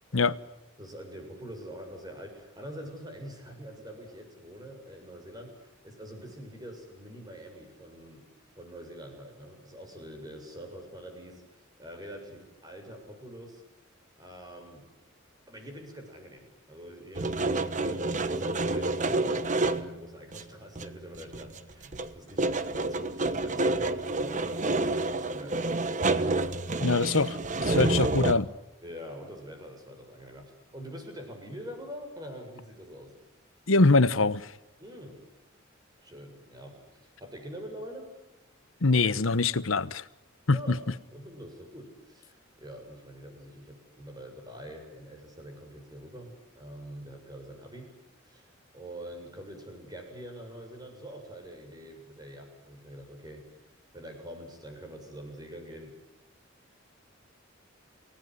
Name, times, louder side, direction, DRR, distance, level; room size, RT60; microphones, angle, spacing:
voice 1, 0.8-8.3 8.6-13.6 14.2-14.8 15.5-24.6 24.9-26.1 28.8-33.1 34.8-35.2 36.0-38.1 40.5-40.8 41.1-47.9 48.2-55.9, equal, 20° right, 7.4 m, -45 dB
sound 1, 17.1-20.0 20.3-20.4 20.7-21.6 21.8-28.3, right 2 dB, 40° right, 1.3 m, -28 dB
voice 2, 26.8-28.5 33.7-34.5 38.8-40.0 40.5-40.8, left 3 dB, 80° left, 1.1 m, -23 dB
29.0 x 18.0 x 9.8 m
head